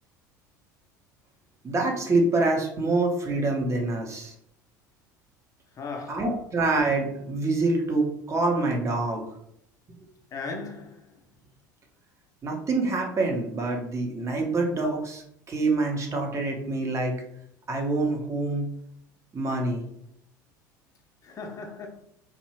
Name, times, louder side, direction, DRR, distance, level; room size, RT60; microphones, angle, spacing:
voice 1, 1.6-4.3 6.1-9.3 12.4-15.2 15.5-17.2 17.7-18.7 19.3-19.8, right 2 dB, 30° right, 0.7 m, -26 dB
voice 2, 5.8-6.3 10.3-11.1 21.2-21.9, left 4 dB, 35° left, 0.6 m, -37 dB
2.6 x 2.0 x 2.9 m
figure-of-eight pair, 70°, 10 cm